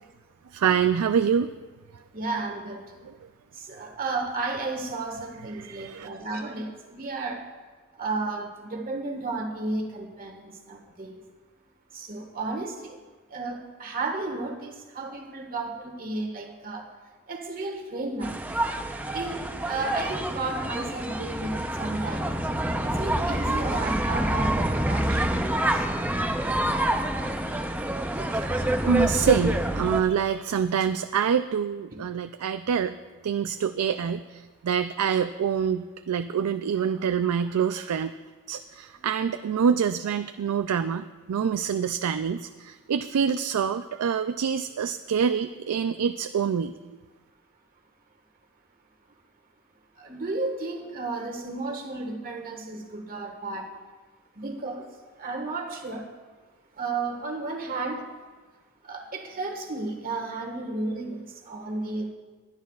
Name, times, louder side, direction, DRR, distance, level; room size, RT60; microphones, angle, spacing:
voice 1, 0.5-1.5 5.6-6.1 28.2-32.9 33.2-38.1 38.5-46.7, right 7 dB, 85° right, 9 dB, 0.4 m, -26 dB
voice 2, 2.1-2.8 3.5-7.4 8.0-11.2 11.9-13.0 13.3-16.9 17.3-18.4 19.1-22.3 22.8-25.9 29.0-29.1 31.9-32.0 50.0-53.7 54.3-54.9 55.2-56.1 56.8-58.1 58.8-62.1, right 3 dB, 40° right, 1 dB, 1.6 m, -33 dB
sound 1, 18.2-30.0, right 1 dB, 10° right, 0.6 m, -27 dB
21.5 x 11.5 x 2.4 m, 1.3 s
head